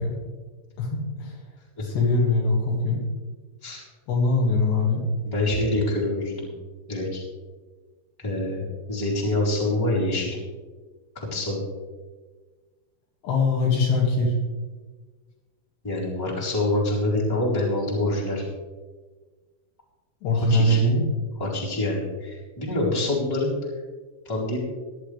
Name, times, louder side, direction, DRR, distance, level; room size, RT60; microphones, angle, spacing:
voice 1, 0.8-1.3 1.8-3.0 4.1-5.0 13.2-14.3 20.2-21.0, left 2 dB, 65° left, -2 dB, 4.1 m, -22 dB
voice 2, 5.2-6.5 6.9-7.2 8.2-8.6 8.9-10.4 11.1-11.6 15.8-18.4 20.3-20.8 21.4-23.5 24.2-24.6, left 2 dB, 5° left, -6 dB, 3.2 m, -26 dB
17.5 x 11.5 x 3.4 m, 1.4 s
omnidirectional pair, 5.6 m